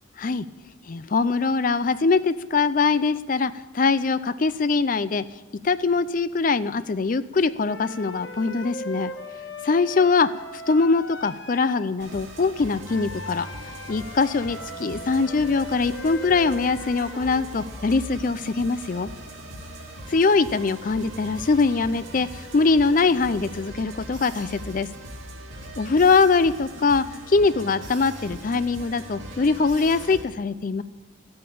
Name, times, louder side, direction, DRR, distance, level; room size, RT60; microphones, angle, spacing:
voice 1, 0.9-5.2 5.6-9.1 9.6-13.5 13.9-19.1 20.1-24.9 25.8-30.8, left 4 dB, 40° left, 14 dB, 0.4 m, -22 dB
sound 1, 7.6-11.9 12.8-17.5, left 2 dB, 65° left, 1.2 m, -39 dB
sound 2, 12.0-30.2, right 1 dB, 70° right, 2.9 m, -40 dB
13.5 x 8.6 x 8.5 m, 1.2 s
head